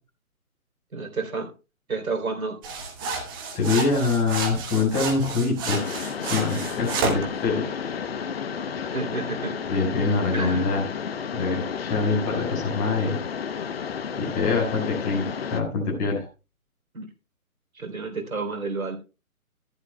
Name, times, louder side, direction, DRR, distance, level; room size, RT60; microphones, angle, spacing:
voice 1, 0.9-1.5 1.9-2.6 8.9-9.5 10.3-10.7 16.9-17.1 17.7-19.0, right 4 dB, 70° right, 4 dB, 3.5 m, -30 dB
sound 1, 2.6-7.3, right 4 dB, 15° right, 1.1 m, -30 dB
voice 2, 3.5-5.8 6.2-7.8 9.7-10.9 11.3-13.2 14.2-16.3, left 4 dB, 20° left, -2 dB, 5.0 m, -25 dB
Mechanisms, 5.6-15.6, left 6 dB, 45° left, 0.9 m, -32 dB
14.0 x 11.5 x 2.2 m, 0.30 s
figure-of-eight pair, 150°, 44 cm